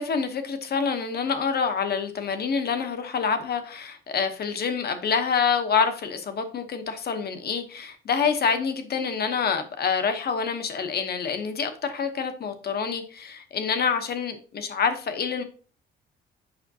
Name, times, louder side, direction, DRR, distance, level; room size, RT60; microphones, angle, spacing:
voice 1, 0.0-15.4, left 6 dB, 50° left, 1.0 m, -27 dB
6.9 x 5.1 x 2.8 m
cardioid pair, 90°, 20 cm